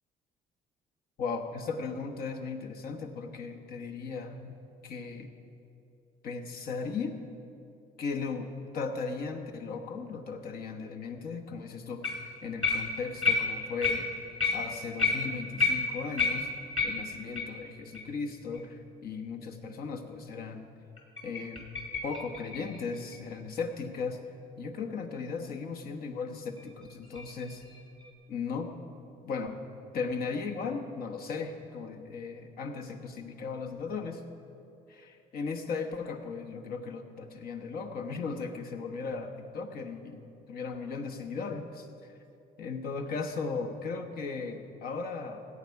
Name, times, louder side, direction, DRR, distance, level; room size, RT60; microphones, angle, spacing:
voice 1, 1.2-4.6 4.8-5.3 6.2-7.2 8.0-14.1 14.5-16.5 16.8-20.7 21.2-21.6 22.0-24.2 24.6-27.6 28.3-28.7 29.2-29.6 29.9-34.2 34.9-41.9 42.6-45.5, left 4 dB, 65° left, 4 dB, 1.1 m, -37 dB
sound 1, 12.0-12.3 12.6-17.6 17.9-18.0 18.5-18.6 19.2-19.3 21.0-23.7 26.6-28.1, left 4 dB, 30° left, 2.2 m, -31 dB
17.0 x 8.4 x 4.7 m, 2.7 s
cardioid pair, 110°, 17 cm